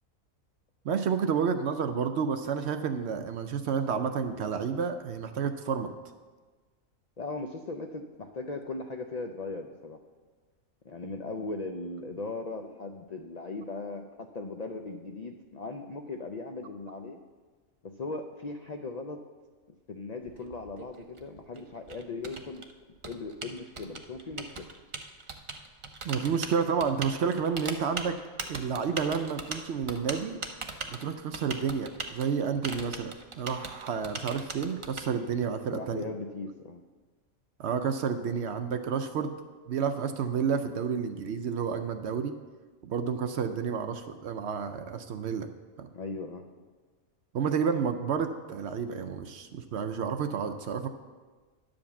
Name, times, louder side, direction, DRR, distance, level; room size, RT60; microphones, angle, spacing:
voice 1, 0.8-5.9 26.0-28.2 28.5-30.4 30.9-36.0 37.6-39.3 39.7-42.3 42.8-45.5 45.8-45.9 47.3-50.9, right 6 dB, 65° right, 8 dB, 0.7 m, -30 dB
voice 2, 7.2-10.0 10.8-17.2 17.8-19.2 19.9-22.6 23.0-24.7 35.7-36.8 45.9-46.4, left 3 dB, 80° left, 4 dB, 0.3 m, -38 dB
Typing, 20.2-35.0, right 3 dB, 45° right, 0.4 m, -40 dB
10.0 x 5.2 x 7.0 m, 1.4 s
omnidirectional pair, 1.5 m